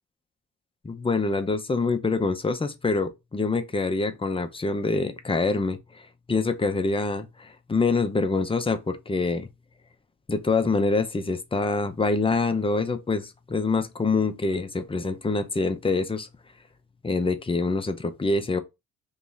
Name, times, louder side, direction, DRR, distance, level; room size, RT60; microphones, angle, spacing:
voice 1, 0.8-5.8 6.3-9.5 10.3-16.3 17.0-18.6, left 3 dB, 20° left, 0.6 m, -25 dB
3.2 x 2.8 x 3.8 m
cardioid pair, 90°, 30 cm